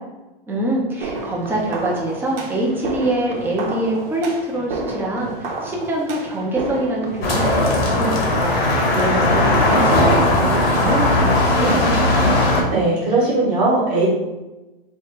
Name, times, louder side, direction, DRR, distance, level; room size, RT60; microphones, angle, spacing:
voice 1, 0.5-12.4, right 1 dB, 5° right, -2 dB, 0.5 m, -24 dB
sound 1, 1.0-9.1, right 2 dB, 80° right, 1.0 m, -30 dB
sound 2, 7.2-12.6, left 1 dB, 80° left, 1.2 m, -17 dB
voice 2, 12.7-14.1, right 2 dB, 35° right, -6 dB, 1.2 m, -18 dB
3.2 x 2.4 x 4.4 m, 1.0 s
hypercardioid pair, 145°, 29 cm